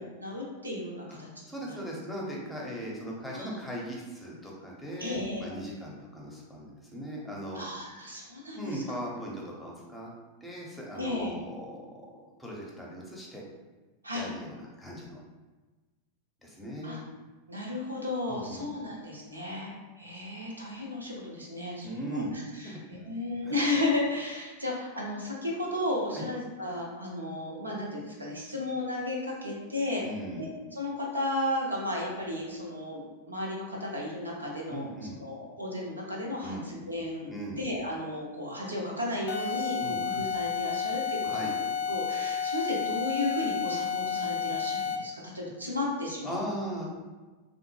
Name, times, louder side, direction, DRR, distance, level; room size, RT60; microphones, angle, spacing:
voice 1, 0.2-1.3 1.6-1.8 3.3-3.5 5.0-5.6 7.5-8.8 11.0-11.3 14.0-14.3 16.8-17.0 17.5-30.0 30.4-34.9 35.2-46.4, left 1 dB, 80° right, -2 dB, 0.7 m, -34 dB
voice 2, 1.5-7.6 8.5-10.1 10.4-13.4 14.1-15.2 16.4-17.0 18.3-18.6 21.8-22.8 23.4-23.5 26.1-26.3 30.0-30.4 34.7-35.2 36.4-36.6 37.3-37.6 39.8-40.0 41.2-41.5 46.2-46.9, equal, 5° left, -3 dB, 0.7 m, -38 dB
sound 1, 39.3-45.2, left 6 dB, 55° left, 0.4 m, -31 dB
3.5 x 2.1 x 3.1 m, 1.3 s
figure-of-eight pair, 90°, 0 cm